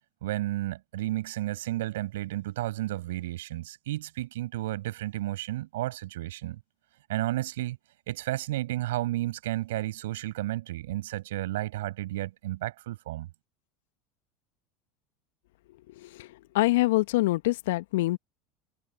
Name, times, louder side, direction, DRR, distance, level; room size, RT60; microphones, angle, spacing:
voice 1, 0.2-6.6 7.1-7.8 8.1-13.3, right 16 dB, 70° right, 7.5 m, -32 dB
voice 2, 15.9-16.3 16.5-18.2, left 19 dB, 65° left, 1.8 m, -25 dB
figure-of-eight pair, 75°, 0 cm